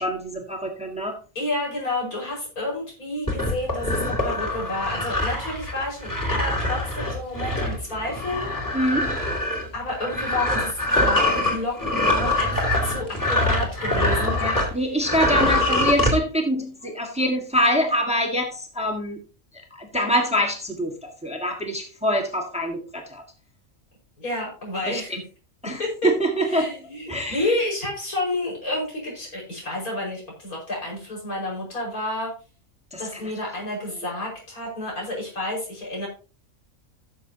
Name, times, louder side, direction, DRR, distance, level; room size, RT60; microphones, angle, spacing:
voice 1, 0.0-1.2 8.7-9.2 14.4-19.2 19.5-23.2 24.8-25.2 25.6-26.7 27.1-27.6 32.9-33.3, equal, 5° right, 2 dB, 1.6 m, -25 dB
voice 2, 1.4-8.5 9.7-14.4 24.2-25.1 25.8-26.1 26.5-32.3 33.0-36.1, left 2 dB, 90° left, -3 dB, 5.7 m, -30 dB
sound 1, 3.3-14.7 15.0-16.1, left 1 dB, 15° left, 2.5 m, -24 dB
15.5 x 7.2 x 2.8 m, 0.35 s
omnidirectional pair, 1.5 m